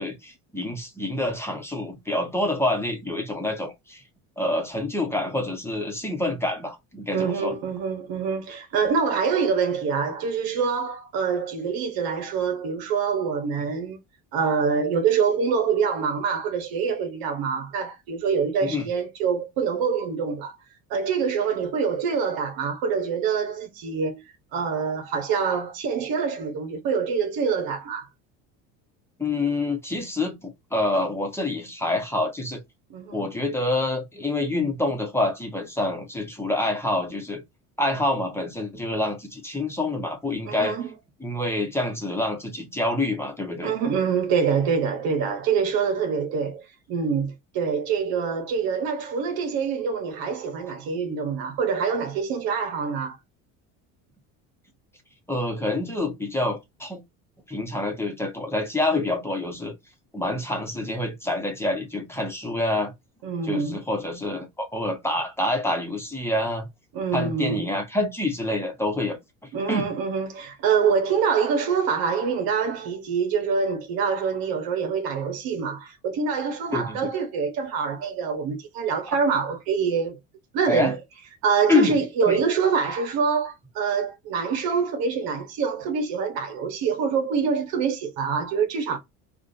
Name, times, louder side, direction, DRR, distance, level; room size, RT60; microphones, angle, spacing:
voice 1, 0.0-4.0 4.4-7.5 18.6-18.9 29.2-32.6 33.1-37.4 37.8-40.8 41.2-43.7 55.3-57.0 57.5-59.7 60.1-62.9 63.4-66.7 67.1-69.2 69.7-69.9 76.7-77.0 80.7-80.9 81.7-82.0 82.3-82.4, left 2 dB, 5° left, 1.2 m, -27 dB
voice 2, 7.1-14.0 14.3-20.6 20.9-24.2 24.5-28.1 32.9-33.2 40.4-40.9 43.6-46.6 46.9-53.2 63.2-63.8 66.9-67.7 69.5-80.2 80.5-81.0 81.4-89.0, right 6 dB, 65° right, 1.1 m, -25 dB
3.6 x 2.5 x 2.6 m
supercardioid pair, 85°, 39 cm